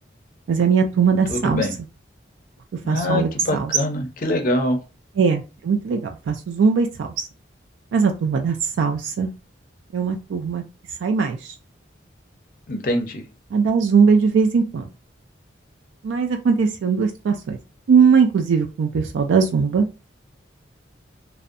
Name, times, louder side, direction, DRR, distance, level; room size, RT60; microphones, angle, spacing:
voice 1, 0.5-1.7 2.9-3.7 5.2-7.1 7.9-9.3 9.9-10.6 11.0-11.5 13.5-14.9 16.0-17.6 17.9-19.9, right 5 dB, 85° right, 4 dB, 0.3 m, -20 dB
voice 2, 1.3-1.7 2.8-4.8 12.7-13.2, left 1 dB, 45° left, 3 dB, 0.5 m, -24 dB
2.5 x 2.1 x 2.5 m, 0.31 s
head